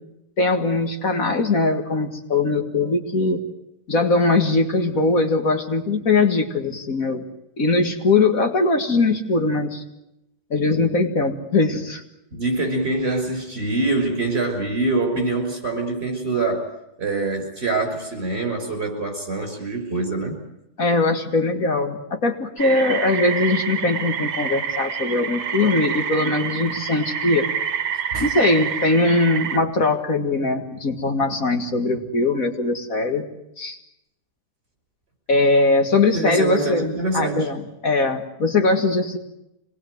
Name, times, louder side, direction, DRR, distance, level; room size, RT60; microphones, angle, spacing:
voice 1, 0.4-3.4 3.9-7.3 7.6-9.8 10.5-12.0 20.8-27.5 28.2-33.3 33.6-33.8 35.3-36.9 37.1-39.2, left 3 dB, 60° left, 5 dB, 2.3 m, -21 dB
voice 2, 12.3-16.7 17.0-20.4 28.1-28.3 36.1-37.5, right 2 dB, 40° right, 4 dB, 6.1 m, -24 dB
sound 1, 22.6-29.6, right 7 dB, 75° right, 1.8 m, -27 dB
26.0 x 20.0 x 9.4 m, 0.87 s
omnidirectional pair, 1.7 m